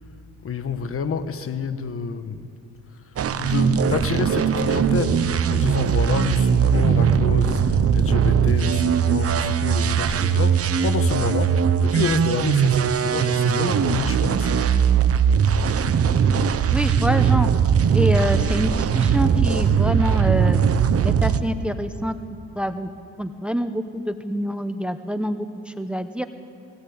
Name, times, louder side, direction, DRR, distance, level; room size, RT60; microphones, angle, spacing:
voice 1, 0.4-2.5 2.9-14.8, left 5 dB, 45° left, 10 dB, 1.4 m, -28 dB
sound 1, 3.2-21.4, right 7 dB, 50° right, 1.1 m, -20 dB
voice 2, 16.7-17.5 17.9-20.6 21.0-22.2 22.6-22.9 23.2-26.2, equal, 5° right, 9 dB, 0.9 m, -26 dB
21.5 x 17.5 x 8.7 m, 2.5 s
cardioid pair, 90°, 30 cm